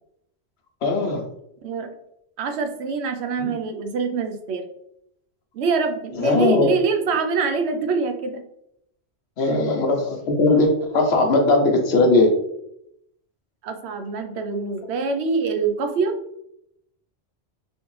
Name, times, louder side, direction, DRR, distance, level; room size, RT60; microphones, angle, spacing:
voice 1, 0.8-1.2 3.4-3.8 6.2-6.7 9.4-12.3, left 2 dB, 70° left, 2 dB, 1.0 m, -19 dB
voice 2, 2.4-4.6 5.5-8.4 9.5-9.6 13.6-16.2, right 4 dB, 75° right, 6 dB, 0.8 m, -25 dB
3.2 x 3.1 x 3.1 m, 0.77 s
omnidirectional pair, 1.1 m